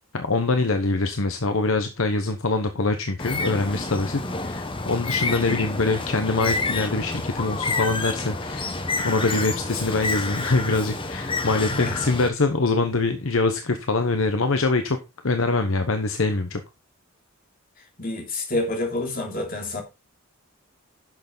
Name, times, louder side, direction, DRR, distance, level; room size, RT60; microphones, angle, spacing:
voice 1, 0.1-8.8 9.0-15.0 15.2-16.6, left 3 dB, 60° left, 1.0 m, -24 dB
Bird, 3.2-12.3, left 3 dB, 25° left, 1.0 m, -29 dB
voice 2, 11.7-12.1 18.0-19.8, left 2 dB, 40° left, 3.0 m, -28 dB
10.5 x 6.7 x 3.9 m
head